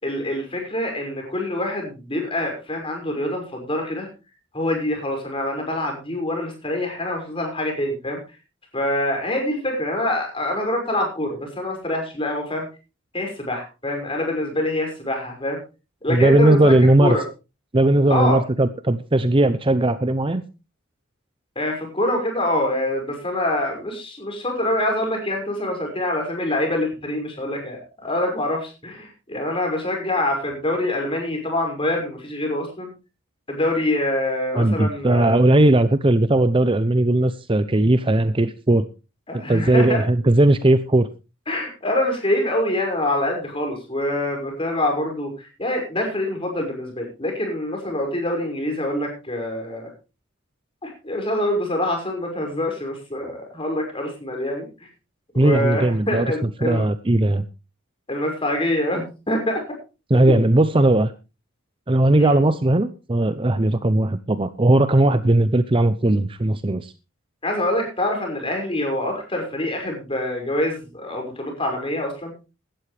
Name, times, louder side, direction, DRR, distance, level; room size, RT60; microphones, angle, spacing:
voice 1, 0.0-4.1 4.5-8.2 8.7-12.6 13.1-15.6 16.0-16.7 17.0-17.2 18.1-18.4 21.6-32.9 33.5-35.7 39.3-40.0 41.5-49.9 50.8-54.7 55.3-56.8 58.1-59.6 60.3-60.4 62.1-62.4 67.4-72.3, left 1 dB, 25° left, 2 dB, 5.7 m, -25 dB
voice 2, 16.1-17.2 17.7-20.4 34.5-38.9 39.5-41.1 55.4-57.4 60.1-61.1 61.9-66.9, right 1 dB, 25° right, 12 dB, 0.6 m, -18 dB
16.5 x 12.5 x 3.3 m, 0.31 s
head